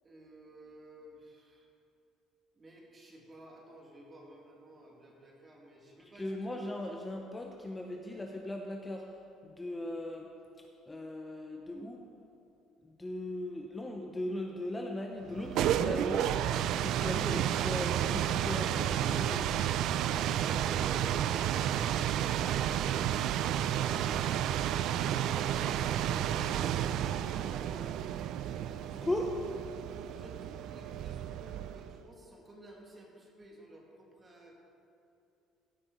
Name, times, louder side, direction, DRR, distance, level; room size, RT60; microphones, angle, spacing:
voice 1, 0.0-1.7 2.5-6.6 28.4-29.1 30.1-34.6, right 1 dB, 25° right, -1 dB, 2.1 m, -53 dB
voice 2, 6.1-9.1 9.4-10.3 10.9-12.0 12.8-16.4 16.8-19.5 29.0-29.3, left 1 dB, 15° left, 1 dB, 0.7 m, -38 dB
sound 1, 15.3-32.0, right 10 dB, 65° right, 0.3 m, -31 dB
15.5 x 6.1 x 3.9 m, 2.7 s
cardioid pair, 110°, 0 cm